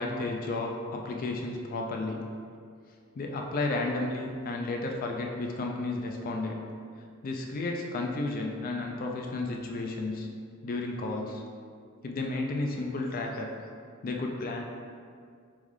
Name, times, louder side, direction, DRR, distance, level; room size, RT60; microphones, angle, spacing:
voice 1, 0.0-2.2 3.1-6.6 7.2-10.3 10.6-11.4 12.0-13.5 14.0-14.6, left 2 dB, 40° left, 1 dB, 0.3 m, -32 dB
5.4 x 2.4 x 3.1 m, 2.2 s
head